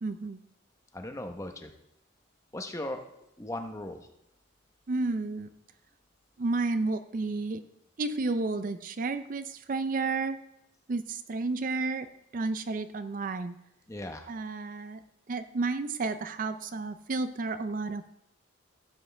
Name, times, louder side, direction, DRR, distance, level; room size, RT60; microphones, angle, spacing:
voice 1, 0.0-0.4 4.9-5.5 6.4-7.6 8.0-10.4 10.9-12.1 12.3-13.5 14.3-15.0 15.3-18.1, right 3 dB, 40° right, 11 dB, 0.4 m, -31 dB
voice 2, 0.9-1.7 2.5-3.1 3.4-4.0 13.9-14.3, left 1 dB, 15° left, 5 dB, 0.8 m, -37 dB
15.0 x 7.9 x 3.3 m, 0.84 s
head